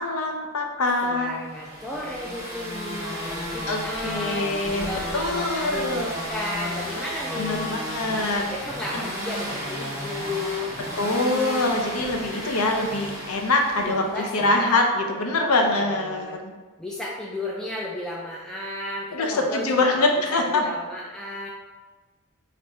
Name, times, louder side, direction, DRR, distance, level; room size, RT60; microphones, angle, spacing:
voice 1, 0.0-1.3 3.7-6.1 7.4-8.4 8.9-9.0 11.0-16.5 19.1-20.6, left 2 dB, 90° left, 3 dB, 0.6 m, -24 dB
voice 2, 1.0-7.6 8.5-10.8 13.8-14.7 15.4-16.4 16.8-20.0 20.3-21.5, left 1 dB, 5° left, -5 dB, 0.3 m, -33 dB
sound 1, 1.5-14.4, equal, 15° right, 1.1 m, -33 dB
3.4 x 2.5 x 4.2 m, 1.3 s
head